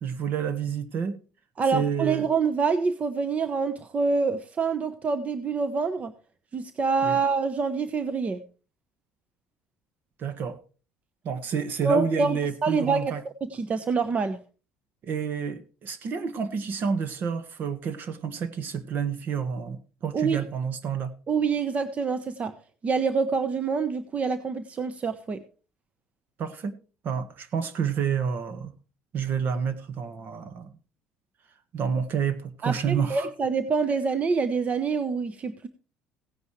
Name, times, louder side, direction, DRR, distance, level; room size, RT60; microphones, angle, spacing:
voice 1, 0.0-1.2 1.7-2.3 7.0-7.2 10.2-10.6 11.2-13.2 15.0-21.1 26.4-26.8 27.0-28.7 29.1-30.7 31.7-33.3, right 7 dB, 55° right, 1.6 m, -29 dB
voice 2, 1.6-6.1 6.5-8.4 11.8-13.1 13.4-14.4 20.1-20.4 21.3-22.5 22.8-25.4 32.6-35.7, right 4 dB, 35° right, 1.0 m, -26 dB
16.5 x 9.6 x 3.2 m
supercardioid pair, 75°, 4 cm